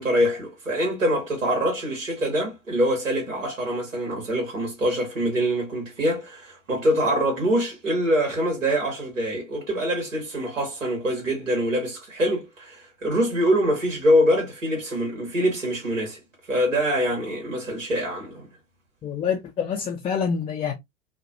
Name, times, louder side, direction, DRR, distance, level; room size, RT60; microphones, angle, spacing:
voice 1, 0.0-16.2 16.5-18.5, equal, 85° right, 1.7 m, -24 dB
voice 2, 19.0-20.7, left 7 dB, 15° left, 0.4 m, -26 dB
3.0 x 2.3 x 2.5 m
figure-of-eight pair, 85°, 38 cm